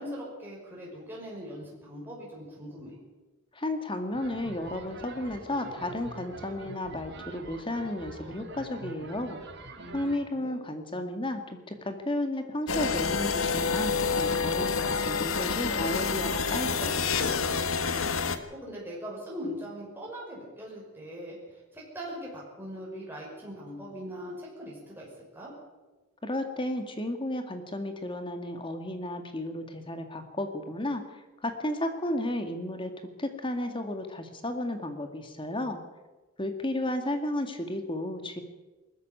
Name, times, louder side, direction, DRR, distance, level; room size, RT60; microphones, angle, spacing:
voice 1, 0.0-3.0 9.8-10.6 17.8-18.2 18.5-25.5, equal, 10° right, -4 dB, 6.0 m, -41 dB
voice 2, 3.5-9.4 9.9-17.2 26.2-31.0 31.4-32.9 33.2-35.8 36.4-38.4, left 1 dB, 25° left, 6 dB, 2.1 m, -33 dB
sound 1, 4.1-10.2, right 2 dB, 60° right, 3.1 m, -44 dB
sound 2, 12.7-18.4, left 5 dB, 80° left, 1.5 m, -28 dB
19.5 x 14.0 x 9.3 m, 1.2 s
head